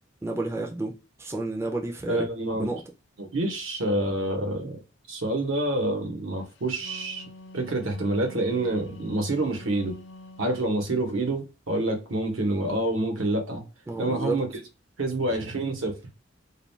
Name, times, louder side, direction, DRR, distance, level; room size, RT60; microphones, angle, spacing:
voice 1, 0.2-2.3 2.5-2.8 13.9-14.4, right 2 dB, 15° right, 0.3 m, -31 dB
voice 2, 2.1-2.7 3.2-4.8 5.1-7.3 7.5-9.9 10.4-13.6 14.0-14.5 15.0-15.9, right 2 dB, 85° right, 0.9 m, -27 dB
Wind instrument woodwind instrument, 6.6-10.8, left 2 dB, 65° left, 0.4 m, -46 dB
2.4 x 2.2 x 3.1 m
head